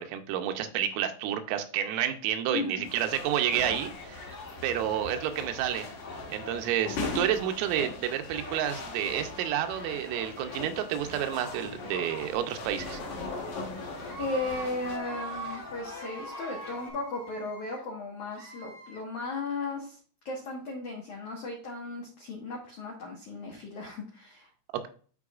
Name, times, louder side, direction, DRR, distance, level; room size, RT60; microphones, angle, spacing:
voice 1, 0.0-4.3 4.6-5.9 6.3-13.0, right 10 dB, 80° right, 7 dB, 3.4 m, -30 dB
voice 2, 2.5-2.9 14.2-20.0 20.2-24.5, left 3 dB, 80° left, -1 dB, 1.7 m, -36 dB
sound 1, 2.8-15.0, left 3 dB, 60° left, 2.2 m, -40 dB
sound 2, 3.1-16.9, left 3 dB, 35° left, 1.1 m, -44 dB
Screaming, 12.9-13.5 14.0-14.7 15.0-15.6 15.9-17.8 18.3-19.0, right 4 dB, 65° right, 1.8 m, -44 dB
13.5 x 4.5 x 2.4 m, 0.42 s
omnidirectional pair, 5.9 m